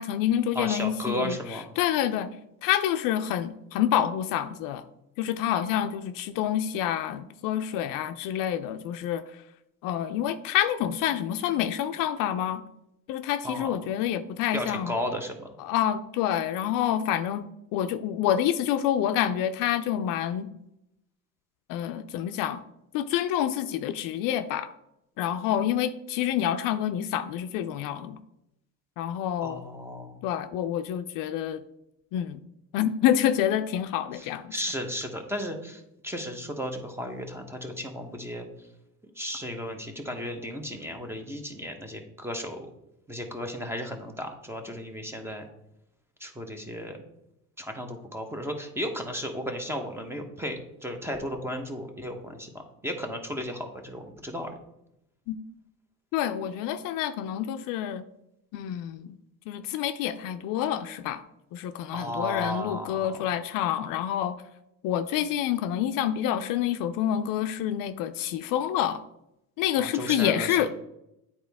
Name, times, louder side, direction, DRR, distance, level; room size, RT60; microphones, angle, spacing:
voice 1, 0.0-2.3 2.6-4.8 5.2-9.2 9.8-12.6 13.1-15.0 15.6-20.5 21.7-22.6 22.9-24.7 25.2-28.2 29.0-29.6 30.2-31.6 32.1-32.4 32.7-34.5 55.3-55.4 56.1-58.0 58.5-59.2 59.5-61.2 61.5-64.4 64.8-69.0 69.6-70.7, left 10 dB, 75° left, 10 dB, 0.5 m, -27 dB
voice 2, 0.5-1.7 13.4-13.7 14.5-15.5 29.4-30.2 34.1-34.3 34.5-38.5 39.2-42.7 43.1-45.5 46.2-47.0 47.6-52.5 52.8-54.5 61.9-63.2 69.8-70.7, equal, 5° right, 4 dB, 0.9 m, -34 dB
8.6 x 4.2 x 3.5 m, 0.84 s
cardioid pair, 105°, 33 cm